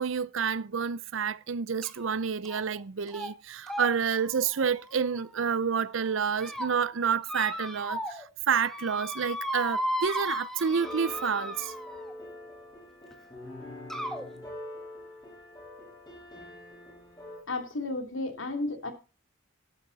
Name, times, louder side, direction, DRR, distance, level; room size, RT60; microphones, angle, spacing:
voice 1, 0.0-11.7, right 6 dB, 75° right, 0.6 m, -29 dB
sound 1, 1.8-2.1 2.5-2.8 3.1-3.3 3.7-5.6 6.1-6.7 7.3-8.3 8.5-12.1 13.1-13.2 13.9-14.2, equal, ahead, 1.7 m, -36 dB
sound 2, 10.7-17.4, left 1 dB, 20° left, 7.4 m, -44 dB
voice 2, 17.5-18.9, left 2 dB, 80° left, 2.8 m, -33 dB
12.0 x 11.5 x 4.1 m
head